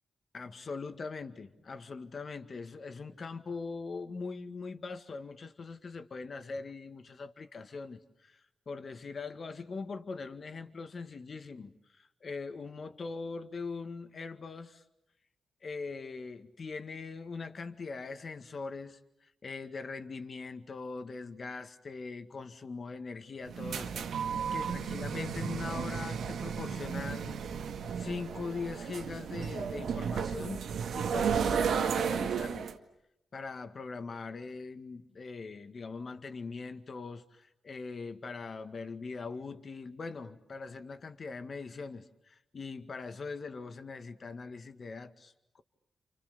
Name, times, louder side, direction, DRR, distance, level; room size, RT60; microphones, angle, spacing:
voice 1, 0.3-8.4 8.7-14.8 15.6-27.4 27.9-30.6 30.9-32.7 33.3-45.6, left 4 dB, 45° left, 1.9 m, -41 dB
sound 1, 23.4-32.7, right 7 dB, 90° right, 2.0 m, -33 dB
30.0 x 28.5 x 6.9 m
wide cardioid pair, 110°, 0 cm